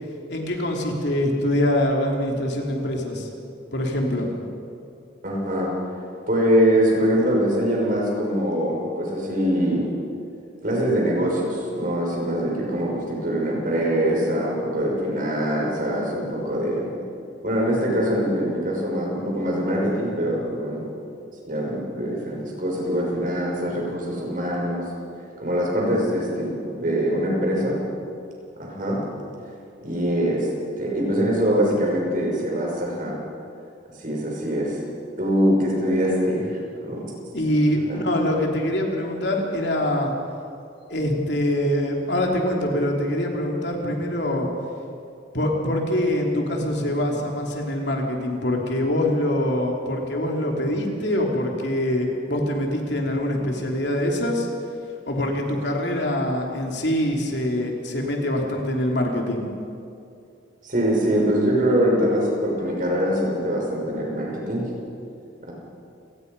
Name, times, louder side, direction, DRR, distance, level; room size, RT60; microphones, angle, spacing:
voice 1, 0.3-3.3 3.7-4.3 37.3-40.1 40.9-44.5 45.3-54.5 55.1-59.5, left 1 dB, 65° left, 0 dB, 3.3 m, -24 dB
voice 2, 5.2-5.7 6.3-9.9 10.6-16.9 17.4-20.9 21.4-24.8 25.4-27.8 28.6-29.0 29.8-30.5 30.8-33.2 34.0-34.8 35.2-37.0 37.8-38.0 60.6-64.6 65.4-65.5, equal, 45° right, -2 dB, 6.1 m, -23 dB
29.0 x 19.5 x 5.5 m, 2.5 s
head